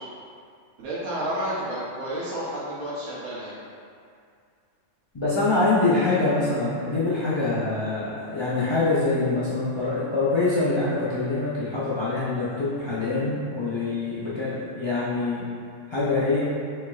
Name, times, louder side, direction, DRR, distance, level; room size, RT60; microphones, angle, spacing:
voice 1, 0.8-3.5, right 1 dB, 75° right, -9 dB, 1.1 m, -30 dB
voice 2, 5.1-15.4 15.9-16.5, left 3 dB, 45° left, -9 dB, 0.3 m, -24 dB
4.4 x 4.2 x 2.3 m, 2.3 s
omnidirectional pair, 1.3 m